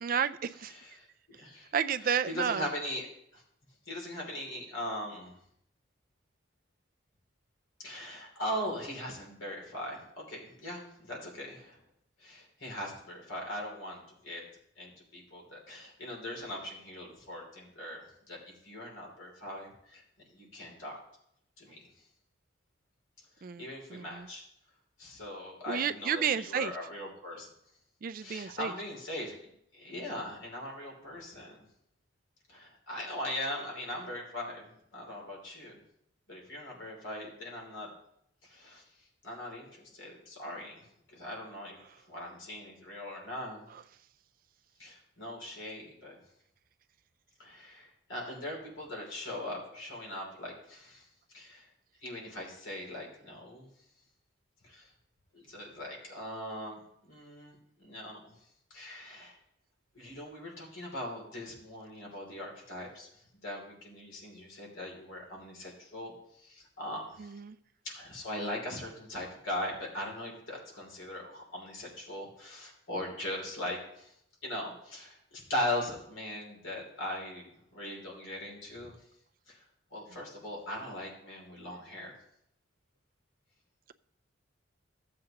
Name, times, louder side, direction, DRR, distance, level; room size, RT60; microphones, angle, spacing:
voice 1, 0.0-0.7 1.7-2.7 23.4-23.6 23.9-24.3 25.7-26.7 28.0-28.7 67.2-67.6, right 7 dB, 45° right, 12 dB, 0.3 m, -31 dB
voice 2, 0.7-1.1 1.4-1.7 2.0-3.4 3.9-5.3 7.8-11.8 12.2-14.5 14.8-20.0 20.3-21.0 21.6-21.9 23.4-24.4 25.0-27.5 28.2-29.4 29.7-31.6 32.5-35.8 36.3-37.9 38.4-43.7 44.8-46.2 47.4-51.7 52.0-53.7 54.6-54.9 55.3-58.4 58.7-59.4 59.9-67.4 67.8-74.1 74.4-78.9 79.5-79.6 79.9-82.1, left 1 dB, 75° left, -1 dB, 2.8 m, -40 dB
15.0 x 7.7 x 2.9 m, 0.74 s
head